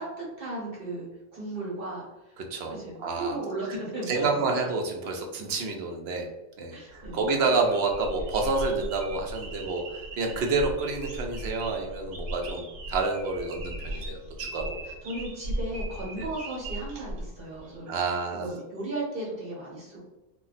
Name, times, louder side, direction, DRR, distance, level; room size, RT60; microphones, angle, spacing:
voice 1, 0.0-2.0 2.7-4.4 6.7-7.3 14.8-17.9 18.3-20.1, right 2 dB, 50° right, -5 dB, 1.0 m, -35 dB
voice 2, 2.4-3.4 3.7-3.8 4.1-6.3 6.6-14.7 16.2-16.3 17.9-18.5, right 3 dB, 65° right, 3 dB, 0.7 m, -29 dB
sound 1, 6.9-17.8, right 1 dB, 80° right, 1.0 m, -38 dB
2.3 x 2.2 x 3.9 m, 1.0 s
omnidirectional pair, 1.4 m